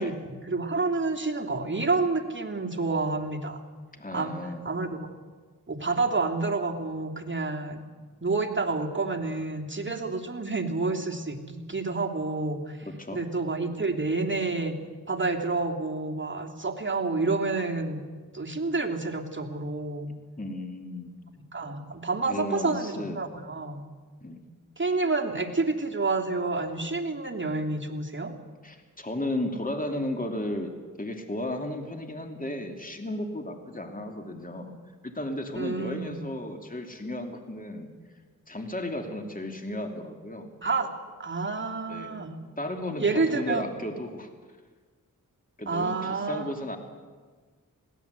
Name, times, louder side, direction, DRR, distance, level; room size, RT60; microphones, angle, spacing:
voice 1, 0.0-3.6 4.1-4.3 4.6-5.1 5.7-7.8 8.2-14.7 15.1-18.1 18.3-20.1 21.5-23.8 24.8-28.3 35.5-36.3 40.6-40.9 41.2-42.4 43.0-43.7 45.7-46.5, right 3 dB, 35° right, 1 dB, 2.9 m, -29 dB
voice 2, 3.9-4.6 13.0-13.2 20.4-21.1 22.3-23.2 24.2-24.4 28.6-30.7 31.0-34.7 35.0-37.9 38.5-40.5 41.9-42.2 42.6-44.3 45.6-46.8, left 1 dB, 25° left, 4 dB, 2.8 m, -34 dB
21.5 x 17.0 x 8.3 m, 1.4 s
cardioid pair, 50°, 33 cm